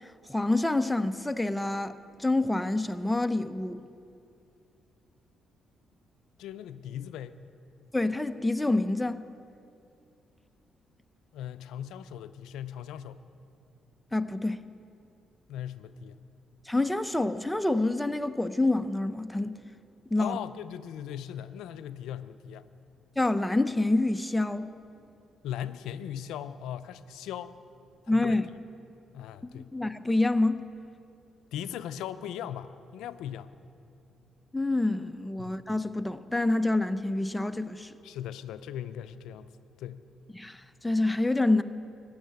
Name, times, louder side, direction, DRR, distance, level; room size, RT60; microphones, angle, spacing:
voice 1, 0.3-1.9 2.2-3.8 7.9-9.2 14.1-14.6 16.7-19.6 20.1-20.4 23.2-24.7 28.1-28.5 29.4-30.6 34.5-37.9 40.3-40.6 40.8-41.6, left 2 dB, 10° left, 0.5 m, -27 dB
voice 2, 6.4-7.4 11.3-13.2 15.5-16.2 20.2-22.7 25.4-27.6 28.0-28.4 29.1-29.7 31.5-33.5 35.4-35.7 38.0-39.5 39.8-40.0, left 10 dB, 85° left, 0.4 m, -39 dB
15.0 x 6.4 x 9.3 m
cardioid pair, 90°, 0 cm